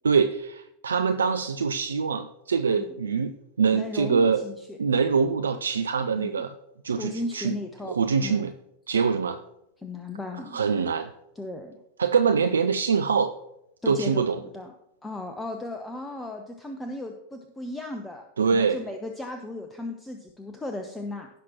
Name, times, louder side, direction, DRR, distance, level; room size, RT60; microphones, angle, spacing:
voice 1, 0.0-4.4 4.8-6.5 6.8-7.5 7.9-8.5 8.9-9.4 10.5-11.1 12.0-13.3 13.9-14.4 18.4-18.8, right 5 dB, 70° right, 9 dB, 0.4 m, -24 dB
voice 2, 3.7-4.8 6.2-6.4 6.9-8.5 9.8-10.6 11.4-11.8 13.8-14.7 15.0-18.2 18.5-21.3, left 2 dB, 10° left, 5 dB, 0.8 m, -36 dB
16.5 x 5.9 x 3.0 m, 0.83 s
figure-of-eight pair, 90°, 0 cm